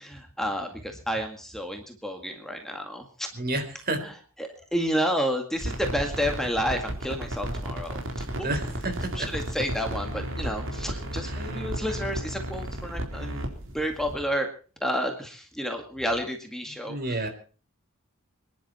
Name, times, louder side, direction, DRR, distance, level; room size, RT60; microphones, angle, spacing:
voice 1, 0.0-3.3 4.0-4.1 4.4-8.5 9.1-14.5 14.8-17.0, equal, ahead, 3 dB, 2.0 m, -30 dB
voice 2, 3.3-4.0 8.4-9.3 11.2-11.6 16.9-17.3, right 2 dB, 45° right, 8 dB, 3.9 m, -31 dB
sound 1, 5.5-14.1, right 1 dB, 65° right, 4.1 m, -33 dB
26.0 x 11.0 x 4.4 m, 0.39 s
head